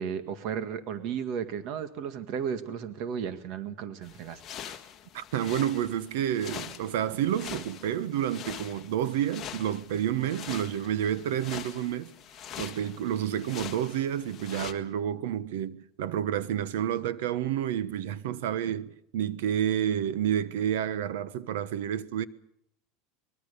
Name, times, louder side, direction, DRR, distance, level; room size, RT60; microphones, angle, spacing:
voice 1, 0.0-4.4, right 7 dB, 50° right, 1.9 m, -34 dB
sound 1, 4.0-14.7, left 9 dB, 25° left, 1.8 m, -43 dB
voice 2, 5.1-12.1 12.6-22.2, right 10 dB, 80° right, 1.3 m, -29 dB
24.0 x 21.5 x 6.9 m
supercardioid pair, 155°, 0 cm